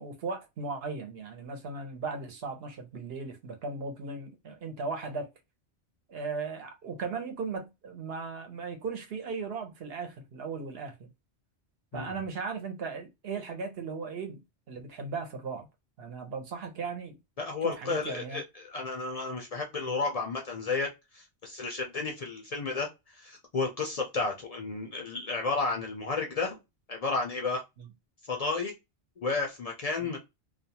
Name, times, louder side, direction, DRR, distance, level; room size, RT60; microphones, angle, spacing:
voice 1, 0.0-5.3 6.1-11.1 11.9-14.4 14.7-15.7 16.0-17.2 17.6-18.4 27.8-27.9 30.0-30.1, right 4 dB, 65° right, 0.9 m, -37 dB
voice 2, 17.4-20.9 21.1-26.6 26.9-27.6 28.3-28.7 29.2-30.2, left 4 dB, 50° left, 0.4 m, -32 dB
2.4 x 2.2 x 2.7 m
omnidirectional pair, 1.1 m